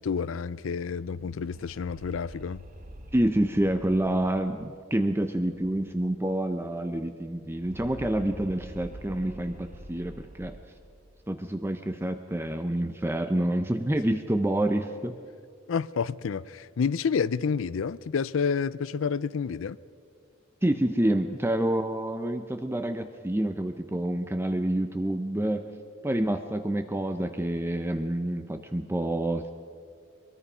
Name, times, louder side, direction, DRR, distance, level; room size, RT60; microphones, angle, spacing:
voice 1, 0.0-2.6 15.7-19.8, left 6 dB, 75° left, 0.4 m, -29 dB
sound 1, 1.0-6.2 6.5-6.6 6.8-11.2, right 1 dB, 40° right, 1.2 m, -47 dB
voice 2, 3.1-10.6 11.3-15.2 20.6-25.7 26.0-29.5, right 1 dB, 10° right, 0.6 m, -28 dB
23.0 x 22.0 x 5.5 m
head